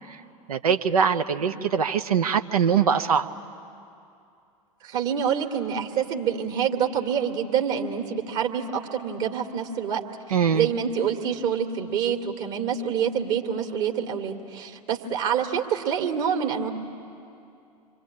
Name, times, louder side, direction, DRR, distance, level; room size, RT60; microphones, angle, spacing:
voice 1, 0.5-3.3 10.3-10.7, right 7 dB, 75° right, 7 dB, 1.0 m, -22 dB
voice 2, 1.4-1.8 4.8-10.0 10.5-16.7, right 8 dB, 50° right, 3 dB, 2.4 m, -27 dB
27.0 x 24.0 x 8.8 m, 2.6 s
figure-of-eight pair, 85°, 19 cm